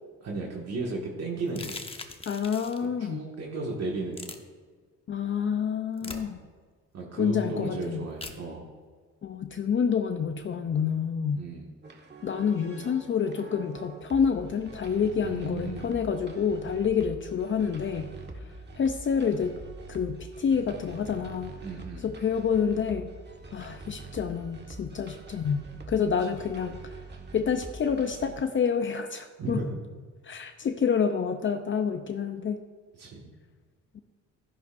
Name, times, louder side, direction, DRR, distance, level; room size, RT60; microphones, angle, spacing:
voice 1, 0.2-1.8 2.8-4.3 6.0-6.4 6.9-8.7 11.4-11.7 15.2-15.9 21.6-22.1 29.4-29.8 33.0-33.3, right 3 dB, 55° right, -2 dB, 1.8 m, -35 dB
sound 1, 1.5-2.9 4.1-4.4 6.0-6.2 8.2-8.4, left 3 dB, 20° left, 1.0 m, -40 dB
voice 2, 2.3-3.2 5.1-6.4 7.2-8.1 9.2-11.4 12.2-18.1 18.8-19.6 19.9-21.6 22.0-23.1 23.5-26.9 27.3-29.6 30.2-32.6 33.9-34.0, left 6 dB, 40° left, 7 dB, 0.6 m, -28 dB
sound 2, 11.8-28.3, right 2 dB, 35° right, 1.6 m, -45 dB
12.0 x 11.0 x 2.6 m, 1.5 s
cardioid pair, 90°, 30 cm